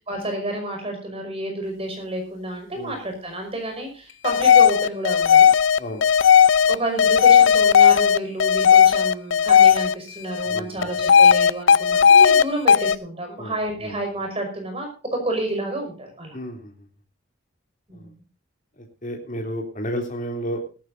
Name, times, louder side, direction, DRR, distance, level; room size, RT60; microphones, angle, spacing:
voice 1, 0.1-5.5 6.6-16.4 17.9-18.1, right 1 dB, 30° right, 4 dB, 5.5 m, -30 dB
sound 1, 4.2-9.9 10.3-12.4 12.7-12.9, left 7 dB, 65° left, 0.6 m, -15 dB
voice 2, 10.4-10.9 13.4-13.5 13.8-13.9 16.3-16.7 17.9-18.1 18.8-20.7, equal, 40° left, 2 dB, 3.0 m, -32 dB
18.0 x 14.0 x 2.6 m, 0.36 s
head